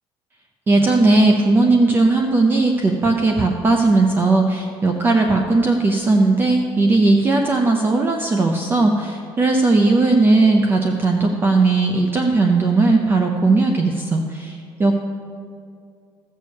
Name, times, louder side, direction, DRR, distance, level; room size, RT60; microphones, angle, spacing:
voice 1, 0.7-15.0, right 3 dB, 20° right, 3 dB, 0.7 m, -17 dB
15.5 x 6.6 x 7.0 m, 2.5 s
cardioid pair, 155°, 9 cm